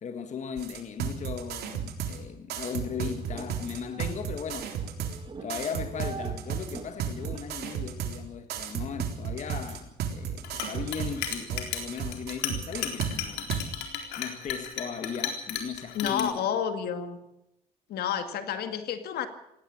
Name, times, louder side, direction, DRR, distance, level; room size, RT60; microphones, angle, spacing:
voice 1, 0.0-4.8 5.4-13.5 14.2-16.4, left 6 dB, 45° left, 1.7 m, -37 dB
sound 1, 0.6-2.2 2.5-5.2 5.5-8.2 8.5-13.1 13.5-13.6, right 8 dB, 70° right, 3.7 m, -33 dB
sound 2, 2.7-7.7, right 5 dB, 30° right, 2.2 m, -45 dB
Chink clink, 10.4-16.2, left 9 dB, 85° left, 4.0 m, -34 dB
voice 2, 15.9-17.2 17.9-19.3, left 8 dB, 70° left, 2.2 m, -30 dB
18.0 x 17.0 x 8.6 m
cardioid pair, 110°, 17 cm